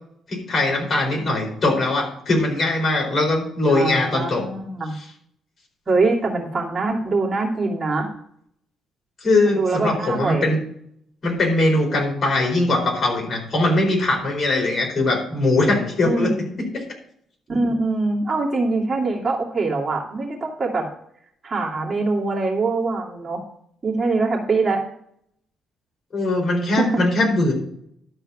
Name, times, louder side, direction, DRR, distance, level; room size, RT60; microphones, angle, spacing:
voice 1, 0.3-4.4 4.9-5.1 9.2-10.6 11.2-16.3 16.6-16.8 26.1-27.5, left 2 dB, 40° left, -1 dB, 4.6 m, -21 dB
voice 2, 3.7-4.9 5.9-8.1 9.4-10.5 16.0-16.5 17.5-20.8 21.4-23.4 23.8-24.8 26.8-26.9, right 3 dB, 30° right, -3 dB, 2.5 m, -23 dB
12.0 x 4.5 x 7.1 m, 0.69 s
cardioid pair, 90°, 0 cm